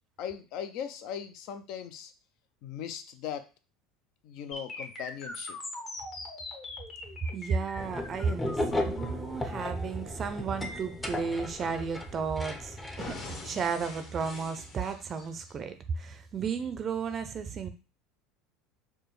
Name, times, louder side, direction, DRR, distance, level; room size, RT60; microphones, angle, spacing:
voice 1, 0.2-2.1 2.6-3.5 4.2-5.6, left 9 dB, 60° left, 10 dB, 0.5 m, -39 dB
sound 1, 4.5-12.5 13.0-15.5, left 2 dB, 40° left, 1.1 m, -43 dB
voice 2, 7.3-17.7, right 5 dB, 40° right, 9 dB, 0.4 m, -33 dB
sound 2, 7.8-13.1, left 1 dB, 15° left, 0.6 m, -35 dB
4.7 x 2.2 x 3.1 m, 0.33 s
hypercardioid pair, 85°, 0 cm